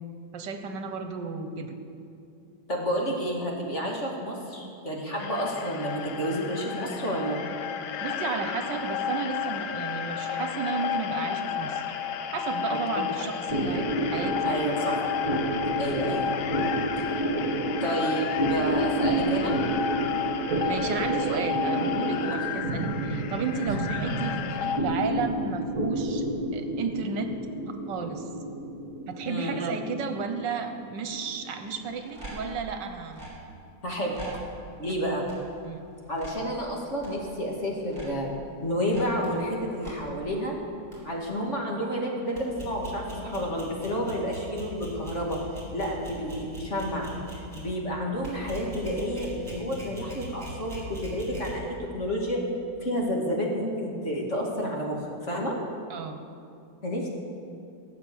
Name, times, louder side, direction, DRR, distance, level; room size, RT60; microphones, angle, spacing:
voice 1, 0.3-1.8 8.0-11.9 12.3-14.6 20.5-26.3 26.5-27.3 27.9-28.3 29.1-33.3 34.3-34.4 35.6-35.8 55.9-56.2, right 5 dB, 75° right, 7 dB, 1.6 m, -33 dB
voice 2, 2.7-7.4 12.7-12.8 14.4-15.1 15.8-16.3 17.8-19.6 22.2-22.3 23.5-23.6 29.3-29.5 33.8-34.2 34.8-35.3 36.1-38.3 38.6-40.6 41.0-45.4 45.7-52.4 52.8-55.6 56.8-57.1, equal, 40° left, -2 dB, 2.5 m, -30 dB
sound 1, 5.2-24.8, left 8 dB, 70° left, 1.4 m, -32 dB
sound 2, 13.5-32.2, right 1 dB, 50° right, 1.9 m, -30 dB
sound 3, 31.6-33.3 34.1-34.5 35.0-35.7 36.0-36.5 37.0-37.3 37.8-38.2 38.8-39.4 39.7-40.0 40.4-40.5 40.9-41.1 41.4-41.5 42.4-47.6 48.2-51.5, equal, 20° right, 3.6 m, -41 dB
17.5 x 6.8 x 8.7 m, 2.6 s
omnidirectional pair, 2.0 m